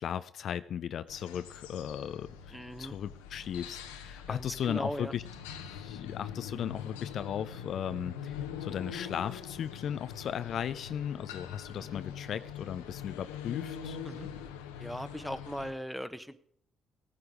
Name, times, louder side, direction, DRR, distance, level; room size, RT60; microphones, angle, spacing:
voice 1, 0.0-5.2 5.6-14.0, left 9 dB, 65° left, 13 dB, 0.4 m, -36 dB
sound 1, 1.1-15.7, left 8 dB, 90° left, 1.0 m, -43 dB
voice 2, 2.5-3.0 4.3-5.1 11.8-12.0 14.0-14.3 14.8-16.4, equal, ahead, 10 dB, 1.2 m, -39 dB
17.0 x 9.7 x 5.0 m, 0.67 s
hypercardioid pair, 50°, 0 cm